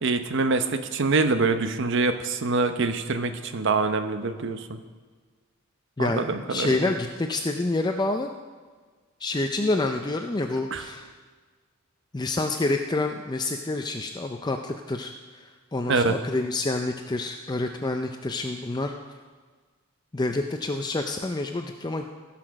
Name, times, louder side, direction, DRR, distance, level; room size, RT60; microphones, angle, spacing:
voice 1, 0.0-4.8 6.0-6.9 10.7-10.8 15.9-16.2, right 3 dB, 60° right, 9 dB, 0.8 m, -25 dB
voice 2, 6.0-8.3 9.2-11.1 12.1-18.9 20.1-22.0, left 2 dB, 20° left, 5 dB, 0.4 m, -28 dB
16.5 x 5.9 x 6.3 m, 1.5 s
head